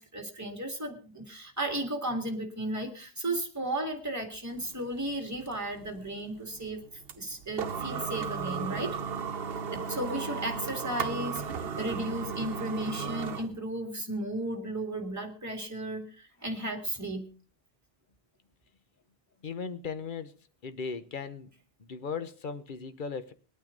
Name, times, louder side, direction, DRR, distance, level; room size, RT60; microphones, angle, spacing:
voice 1, 0.0-6.8 7.2-9.0 9.5-17.3, right 1 dB, 15° right, 2.2 m, -34 dB
sound 1, 4.5-13.6, right 6 dB, 70° right, 1.1 m, -35 dB
voice 2, 19.4-20.3 20.6-21.5 21.8-23.3, left 5 dB, 55° left, 1.1 m, -37 dB
21.5 x 9.1 x 3.9 m
omnidirectional pair, 1.0 m